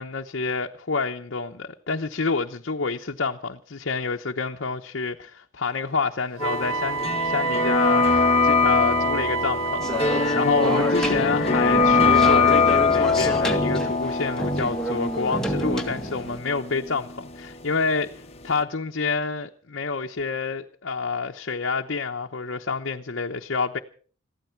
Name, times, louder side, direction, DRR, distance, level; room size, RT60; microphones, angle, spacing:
voice 1, 0.0-23.8, left 4 dB, 60° left, 0.9 m, -28 dB
sound 1, 6.4-18.1 18.4-18.5, left 4 dB, 30° left, 1.1 m, -23 dB
Wind instrument woodwind instrument, 6.4-11.2, right 6 dB, 80° right, 0.8 m, -29 dB
sound 2, 9.8-16.4, equal, 5° left, 2.1 m, -28 dB
21.5 x 15.0 x 4.5 m
head